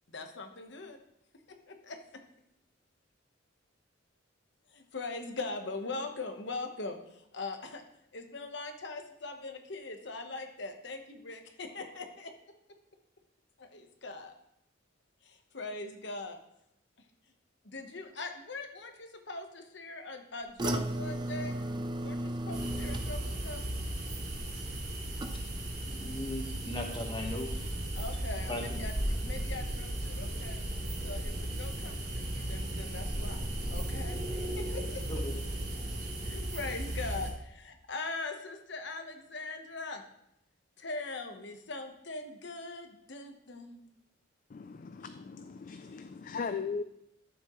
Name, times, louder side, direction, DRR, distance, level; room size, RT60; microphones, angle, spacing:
voice 1, 0.1-1.0 1.5-2.0 4.7-7.8 8.1-12.3 13.6-14.3 15.2-16.4 17.6-21.6 22.0-23.6 27.9-30.6 31.0-33.4 33.7-35.0 36.2-40.0 40.8-43.8, left 3 dB, 60° left, 5 dB, 1.1 m, -41 dB
sound 1, 20.6-25.8 26.1-26.6 27.0-27.1, right 1 dB, 20° right, 0.5 m, -37 dB
sound 2, 22.5-37.3, right 1 dB, 50° right, 3.1 m, -36 dB
voice 2, 25.9-27.7 28.5-28.8 35.1-35.4, left 1 dB, 25° left, 2 dB, 1.3 m, -38 dB
voice 3, 44.5-46.8, left 5 dB, 40° left, 9 dB, 0.3 m, -38 dB
12.5 x 7.3 x 3.1 m, 0.78 s
head